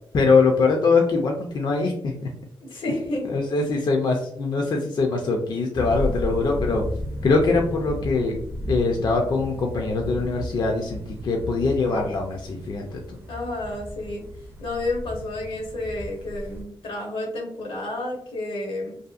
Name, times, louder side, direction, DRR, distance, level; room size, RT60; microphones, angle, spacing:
voice 1, 0.1-2.1 3.3-6.8 7.2-8.4 8.7-13.2, left 4 dB, 50° left, 2 dB, 0.4 m, -22 dB
voice 2, 2.6-3.3 13.3-14.2 14.6-19.0, left 2 dB, 85° left, 1 dB, 0.8 m, -30 dB
sound 1, 5.7-16.6, equal, 25° right, 0.4 m, -34 dB
2.7 x 2.5 x 2.4 m, 0.69 s
wide cardioid pair, 110°, 9 cm